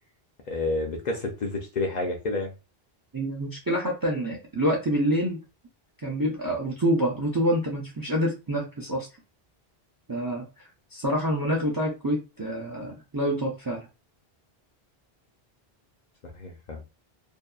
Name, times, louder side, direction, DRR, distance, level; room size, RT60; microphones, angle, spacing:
voice 1, 0.5-2.5 16.3-16.8, left 2 dB, 55° left, 2 dB, 0.6 m, -29 dB
voice 2, 3.1-5.4 6.0-9.1 10.1-10.5 10.9-13.9, equal, 30° right, -2 dB, 0.4 m, -27 dB
2.6 x 2.2 x 2.3 m, 0.29 s
omnidirectional pair, 1.0 m